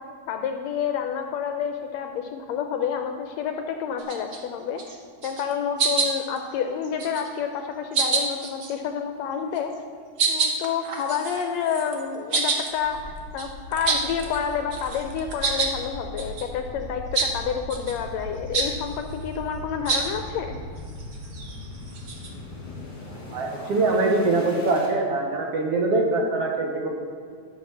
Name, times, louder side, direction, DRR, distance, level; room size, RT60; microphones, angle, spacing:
voice 1, 0.3-5.0 5.2-9.7 10.3-20.6, left 7 dB, 75° left, 6 dB, 1.6 m, -29 dB
sound 1, 4.0-4.4 4.8-5.0 5.2-5.5 5.8-6.4 6.8-7.4 7.9-8.8 9.6-9.7 10.2-14.4 14.7-15.7 16.2-16.5 17.1-17.3 17.7-18.0 18.5-18.7 19.9-20.1 20.8-22.3, right 4 dB, 80° right, 0.9 m, -27 dB
sound 2, 12.7-24.9, left 1 dB, 20° left, 1.4 m, -39 dB
voice 2, 23.3-26.9, right 2 dB, 60° right, 1 dB, 1.8 m, -23 dB
11.5 x 5.9 x 6.8 m, 2.1 s
omnidirectional pair, 3.5 m